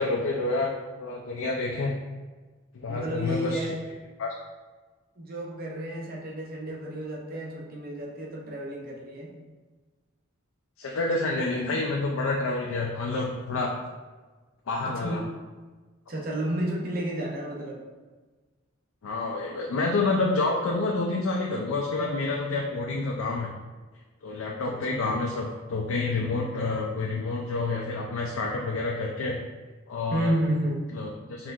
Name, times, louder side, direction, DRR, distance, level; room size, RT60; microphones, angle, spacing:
voice 1, 0.0-2.0 2.7-3.7 4.2-4.3 10.8-13.7 14.7-15.2 19.0-23.5 24.2-29.4 29.9-30.4 30.9-31.5, left 3 dB, 85° left, -1 dB, 0.4 m, -28 dB
voice 2, 2.9-3.7 5.2-9.3 14.9-15.3 16.1-17.8 24.9-25.0 30.1-30.9, right 1 dB, 45° right, -2 dB, 0.7 m, -31 dB
4.4 x 3.3 x 2.4 m, 1.3 s
head